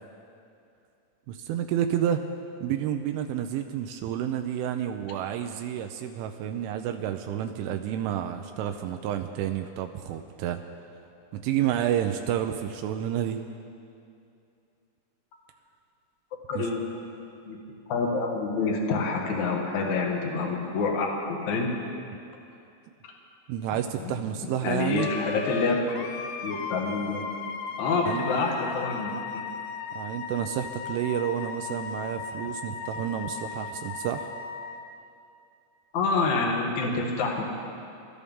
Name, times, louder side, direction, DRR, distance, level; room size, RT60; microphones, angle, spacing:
voice 1, 1.3-2.2 2.6-10.6 11.3-13.4 16.5-16.7 23.5-25.1 28.1-28.2 29.9-34.3, right 10 dB, 80° right, 6 dB, 3.0 m, -30 dB
voice 2, 16.5-16.8 17.4-17.6 17.9-21.1 21.5-21.7 24.0-24.1 24.6-25.8 26.4-27.2 27.8-29.4 35.9-37.4, left 4 dB, 55° left, 0 dB, 2.1 m, -27 dB
Wind instrument woodwind instrument, 25.0-34.8, left 5 dB, 80° left, 3.5 m, -36 dB
27.0 x 13.5 x 3.6 m, 2.6 s
omnidirectional pair, 5.8 m